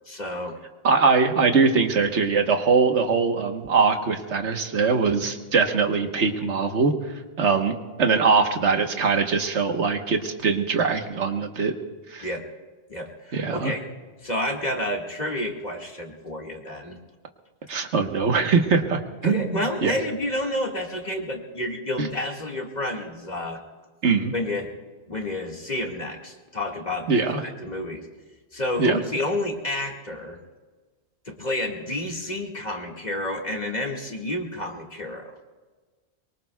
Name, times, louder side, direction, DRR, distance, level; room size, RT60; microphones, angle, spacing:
voice 1, 0.1-0.6 12.2-12.4 12.9-13.9 14.2-17.0 19.2-23.6 24.3-24.7 25.1-28.1 28.5-30.4 31.3-35.4, left 1 dB, 40° left, 0 dB, 2.0 m, -30 dB
voice 2, 0.8-6.9 7.4-11.7 12.1-12.2 13.3-13.7 17.7-19.9 22.0-22.1 24.0-24.3 27.1-27.4 28.8-29.0, right 5 dB, 90° right, 5 dB, 1.5 m, -22 dB
24.0 x 23.0 x 2.3 m, 1.4 s
omnidirectional pair, 1.1 m